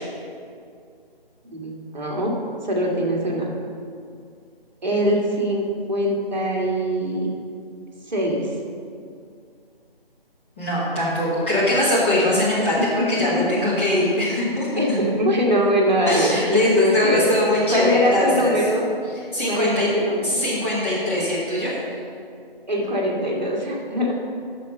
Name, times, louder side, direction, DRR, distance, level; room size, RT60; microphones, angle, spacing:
voice 1, 1.5-2.3 2.6-3.5 4.8-7.3 8.1-8.5 12.6-12.7 12.9-13.0 13.3-13.6 14.8-17.4 17.7-18.8 19.5-20.4 22.7-24.1, equal, 45° right, -2 dB, 1.6 m, -22 dB
voice 2, 10.6-12.8 13.1-14.7 16.1-18.5 19.3-19.9 20.2-21.7, left 1 dB, 15° left, -10 dB, 1.1 m, -21 dB
12.0 x 4.2 x 5.4 m, 2.3 s
figure-of-eight pair, 165°, 30 cm